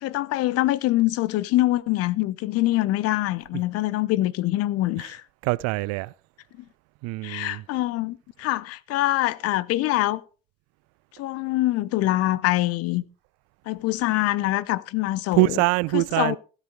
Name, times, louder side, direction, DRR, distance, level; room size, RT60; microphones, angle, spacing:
voice 1, 0.0-5.2 7.2-10.2 11.2-13.0 13.7-15.5 15.9-16.4, left 16 dB, 55° left, 0.9 m, -24 dB
voice 2, 5.4-6.1 7.0-7.6 15.3-16.4, right 23 dB, 55° right, 0.5 m, -23 dB
16.0 x 8.2 x 4.8 m
figure-of-eight pair, 55°, 30 cm